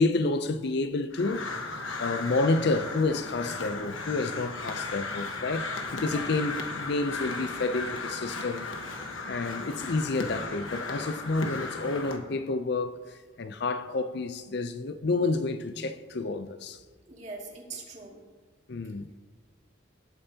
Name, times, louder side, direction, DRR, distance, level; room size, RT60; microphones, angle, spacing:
voice 1, 0.0-8.7 9.3-16.8 18.7-19.1, left 3 dB, 55° left, 0.5 m, -29 dB
Crow, 1.1-12.2, left 3 dB, 90° left, 1.3 m, -36 dB
voice 2, 6.0-6.4 17.1-18.2, right 3 dB, 35° right, 2.3 m, -42 dB
18.0 x 9.0 x 2.8 m
head